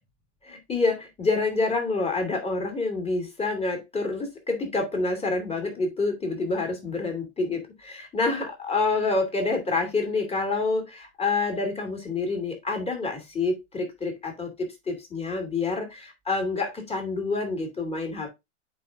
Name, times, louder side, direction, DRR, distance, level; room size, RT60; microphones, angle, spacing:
voice 1, 0.4-18.3, left 3 dB, 15° left, 2.4 m, -27 dB
9.2 x 4.2 x 2.5 m
hypercardioid pair, 100°, 37 cm